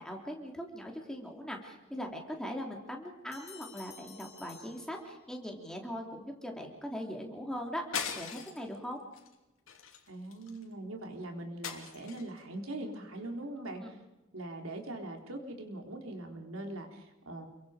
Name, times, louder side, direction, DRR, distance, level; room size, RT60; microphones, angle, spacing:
voice 1, 0.0-9.0 13.8-14.0, equal, 5° left, 1 dB, 3.4 m, -40 dB
sound 1, 3.3-5.6, left 7 dB, 30° left, 5.0 m, -54 dB
sound 2, 7.9-8.7 9.1-9.3 9.7-10.6 11.6-12.4, left 7 dB, 65° left, 2.9 m, -39 dB
voice 2, 10.1-14.0 14.3-17.5, right 1 dB, 80° right, 3 dB, 3.8 m, -41 dB
29.0 x 23.5 x 5.1 m, 0.98 s
head